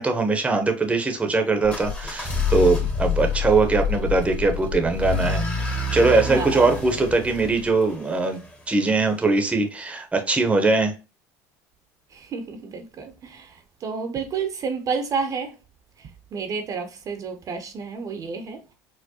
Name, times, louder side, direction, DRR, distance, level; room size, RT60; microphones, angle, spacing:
voice 1, 0.0-8.4 8.7-10.9, right 3 dB, 15° right, 0.8 m, -21 dB
sound 1, 1.6-8.5, left 4 dB, 15° left, 1.0 m, -27 dB
voice 2, 6.3-6.8 12.1-15.6 16.0-18.7, right 5 dB, 45° right, 0.7 m, -31 dB
4.4 x 2.1 x 2.8 m
supercardioid pair, 95°, 8 cm